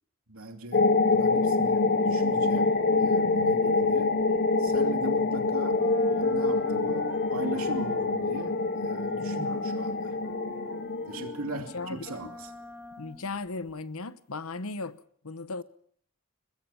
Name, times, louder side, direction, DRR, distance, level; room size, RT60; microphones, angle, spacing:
voice 1, 0.3-4.2 4.6-5.8 6.2-10.2 11.1-12.5, right 2 dB, 85° right, 2.8 m, -40 dB
sound 1, 0.7-11.9, left 3 dB, 50° left, 0.8 m, -26 dB
sound 2, 2.5-5.4 5.7-13.8, left 1 dB, 10° right, 1.7 m, -46 dB
voice 2, 9.2-9.5 11.5-12.3 13.0-15.6, left 3 dB, 80° left, 1.0 m, -37 dB
23.0 x 20.5 x 5.8 m
head